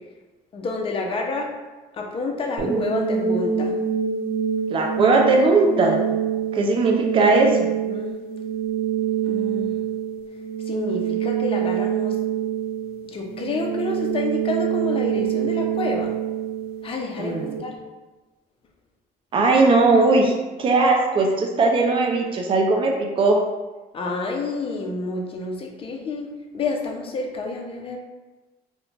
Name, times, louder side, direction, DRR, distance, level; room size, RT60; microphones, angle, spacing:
voice 1, 0.5-1.5 1.9-3.8 7.9-8.2 9.3-9.7 10.6-12.2 13.1-16.1 16.8-17.8 23.9-28.0, left 3 dB, 35° left, 1 dB, 0.5 m, -29 dB
sound 1, 2.6-17.6, right 8 dB, 70° right, 0.8 m, -26 dB
voice 2, 4.7-6.0 6.5-7.5 17.2-17.5 19.3-20.3 20.6-23.4, right 3 dB, 30° right, 1 dB, 0.4 m, -18 dB
2.4 x 2.1 x 3.2 m, 1.2 s
cardioid pair, 110°, 17 cm